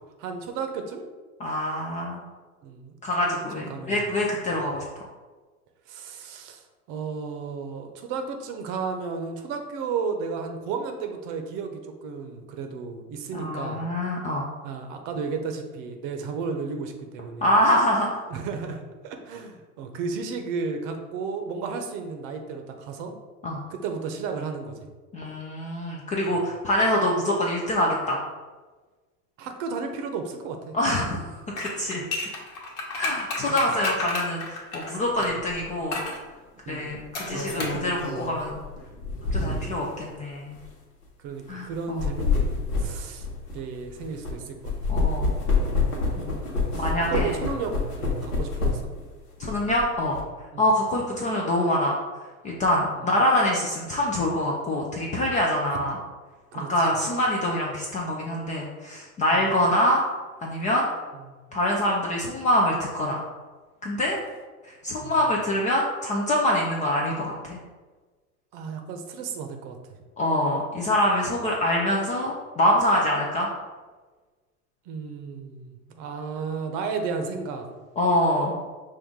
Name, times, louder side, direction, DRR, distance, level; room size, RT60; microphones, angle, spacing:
voice 1, 0.2-1.1 2.6-4.2 4.5-4.6 5.9-13.9 14.6-17.5 18.3-23.2 23.7-24.8 26.2-26.4 29.4-30.7 33.4-33.5 35.2-35.4 36.7-37.0 37.3-37.7 39.9-40.0 41.2-43.3 43.5-44.7 46.0-46.2 46.7-48.9 50.5-50.7 53.0-53.1 56.5-56.9 59.3-59.5 61.3-61.4 65.0-65.2 68.5-69.8 74.9-77.7, right 5 dB, 45° right, 5 dB, 0.8 m, -33 dB
voice 2, 1.4-2.2 3.0-4.8 13.3-14.5 17.4-18.2 23.4-23.6 25.1-28.2 30.7-32.0 32.9-36.0 36.7-38.6 39.3-40.6 41.5-42.0 44.9-45.3 46.2-46.3 46.7-47.3 49.4-50.2 50.6-51.9 52.4-56.0 56.7-60.0 60.4-60.9 61.5-63.2 63.8-64.2 64.6-67.6 70.2-73.5 78.0-78.6, left 1 dB, 20° left, -2 dB, 0.3 m, -25 dB
sound 1, 31.5-35.3 35.9-36.2 37.1-37.8 38.1-38.2, left 3 dB, 65° left, 1.3 m, -31 dB
sound 2, 35.5-35.7 37.0-39.8 40.5-40.7 41.7-44.3 44.6-49.0 49.4-50.2, left 3 dB, 85° left, 1.3 m, -27 dB
5.5 x 2.5 x 3.6 m, 1.3 s
hypercardioid pair, 95°, 46 cm